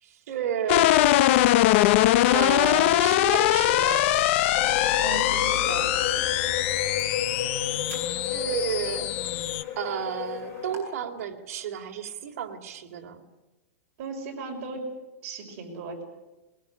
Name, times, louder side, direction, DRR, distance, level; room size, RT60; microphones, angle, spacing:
voice 1, 0.0-1.1 2.3-4.1 8.3-9.1 9.8-13.2, right 9 dB, 65° right, 3 dB, 3.1 m, -32 dB
sound 1, 0.7-9.6, left 14 dB, 50° left, 1.0 m, -22 dB
sound 2, 4.6-10.8, left 8 dB, 35° left, 4.1 m, -33 dB
sound 3, 5.0-10.8, right 5 dB, 25° right, 7.8 m, -52 dB
voice 2, 5.0-5.9 14.0-14.9 15.2-16.0, right 4 dB, 50° right, 2 dB, 6.1 m, -36 dB
22.0 x 21.5 x 8.3 m, 1.1 s
supercardioid pair, 155°, 8 cm